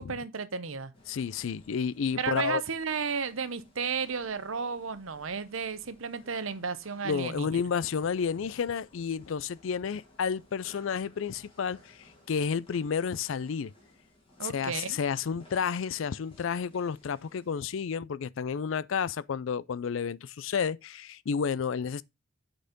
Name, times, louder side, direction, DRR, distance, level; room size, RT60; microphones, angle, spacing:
voice 1, 0.0-0.9 2.2-7.5 14.4-15.0, right 5 dB, 80° right, 0.9 m, -33 dB
sound 1, 0.9-17.8, left 1 dB, 25° left, 2.4 m, -60 dB
voice 2, 1.1-2.6 7.0-13.7 14.4-22.0, left 6 dB, 70° left, 0.4 m, -31 dB
7.9 x 4.4 x 5.1 m
head